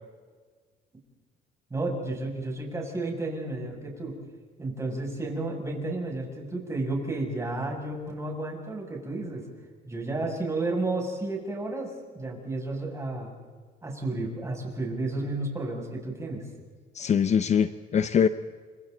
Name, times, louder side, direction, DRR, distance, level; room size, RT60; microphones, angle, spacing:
voice 1, 1.7-4.2 4.6-9.5 9.8-13.3 13.8-16.4, right 2 dB, 15° right, -1 dB, 7.3 m, -32 dB
voice 2, 16.9-18.3, left 7 dB, 40° left, 11 dB, 0.9 m, -23 dB
29.5 x 26.5 x 4.1 m, 1.5 s
cardioid pair, 110°, 17 cm